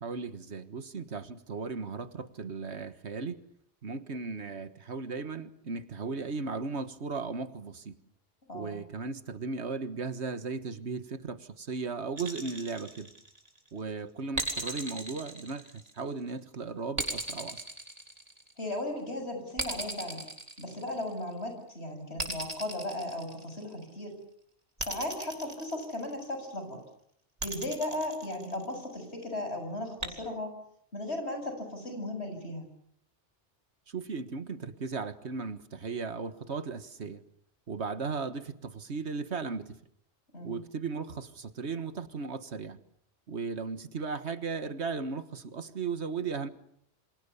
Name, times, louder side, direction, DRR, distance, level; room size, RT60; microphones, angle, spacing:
voice 1, 0.0-3.4 3.8-7.9 8.5-13.1 13.7-17.6 33.9-37.2 37.7-39.8 40.4-42.8 43.3-46.5, right 4 dB, 70° right, 11 dB, 1.7 m, -36 dB
voice 2, 8.5-8.8 18.6-20.3 20.6-24.1 24.8-26.8 27.4-30.6 30.9-32.7 40.3-40.6, left 1 dB, 65° left, 6 dB, 7.3 m, -36 dB
sound 1, 12.2-13.6 14.4-16.2 17.0-18.7 19.6-21.3 22.2-23.8 24.8-26.3 27.4-28.9 30.0-30.1, right 1 dB, 35° right, 4.0 m, -37 dB
28.0 x 26.5 x 7.0 m, 0.68 s
omnidirectional pair, 1.2 m